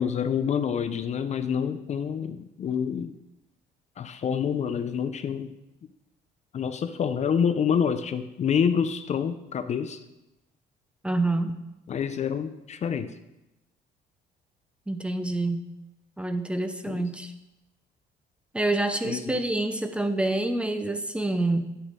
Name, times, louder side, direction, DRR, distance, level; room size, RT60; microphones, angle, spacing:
voice 1, 0.0-3.1 4.0-5.5 6.5-10.0 11.9-13.1 16.9-17.1 19.0-19.4, left 7 dB, 40° left, 10 dB, 0.6 m, -27 dB
voice 2, 11.0-11.5 14.9-15.6 16.2-17.3 18.5-21.7, right 2 dB, 5° right, 8 dB, 0.7 m, -27 dB
10.0 x 8.2 x 3.7 m, 0.96 s
cardioid pair, 110°, 17 cm